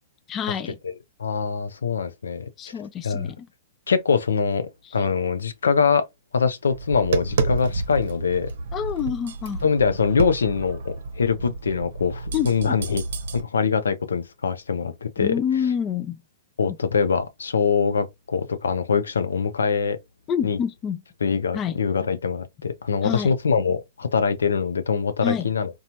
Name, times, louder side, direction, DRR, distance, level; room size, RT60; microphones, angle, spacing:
voice 1, 0.3-0.8 2.6-3.5 8.7-9.6 12.3-12.8 15.2-16.2 20.3-21.0 21.5-21.8 23.0-23.3 25.2-25.5, left 8 dB, 25° left, 0.3 m, -27 dB
voice 2, 1.2-2.5 3.0-3.3 3.9-6.0 6.3-8.5 9.6-13.0 13.3-15.3 16.6-20.0 20.4-20.6 21.2-25.8, left 6 dB, 90° left, 0.5 m, -23 dB
Tap, 6.7-13.4, right 3 dB, 70° right, 0.7 m, -29 dB
3.0 x 2.3 x 2.6 m
hypercardioid pair, 125°, 0 cm